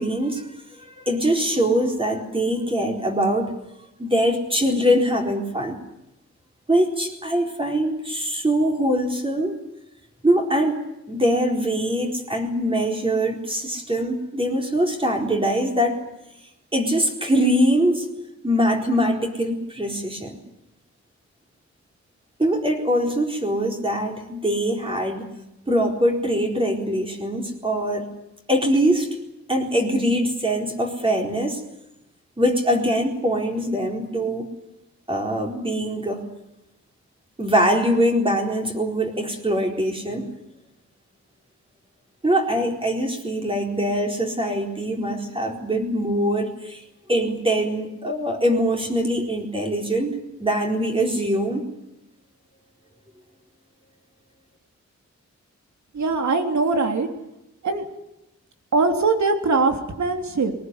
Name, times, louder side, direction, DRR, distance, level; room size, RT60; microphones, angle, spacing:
voice 1, 0.0-3.5 4.0-5.8 6.7-9.6 10.2-16.0 16.7-18.1 18.4-20.4 22.4-25.3 25.7-28.1 28.5-29.1 29.5-31.6 32.4-34.5 35.1-36.2 37.4-40.3 42.2-46.8 47.1-51.7, equal, 20° right, 1 dB, 4.3 m, -23 dB
voice 2, 55.9-57.1 57.6-57.9 58.7-60.5, right 3 dB, 75° right, 5 dB, 3.5 m, -21 dB
22.0 x 19.0 x 9.9 m, 0.87 s
wide cardioid pair, 145°, 29 cm